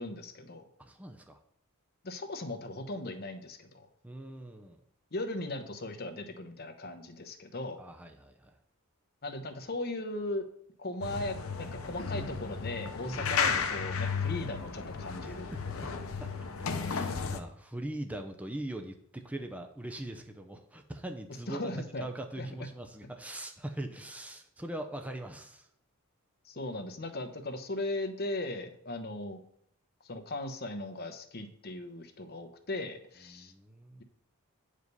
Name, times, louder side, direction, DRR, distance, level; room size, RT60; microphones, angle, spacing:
voice 1, 0.0-0.6 2.0-3.9 5.1-7.8 9.2-10.5 10.8-15.5 21.5-22.0 22.4-22.5 26.4-29.4 30.0-33.5, left 2 dB, 45° left, 6 dB, 0.9 m, -38 dB
voice 2, 0.8-1.4 4.0-4.8 7.8-8.5 13.0-13.2 15.2-15.9 16.2-16.3 16.7-21.7 22.0-25.7 33.3-34.0, right 1 dB, 5° right, 4 dB, 0.6 m, -41 dB
sound 1, 11.0-17.4, left 6 dB, 70° left, 0.8 m, -34 dB
8.0 x 5.0 x 5.4 m, 0.68 s
head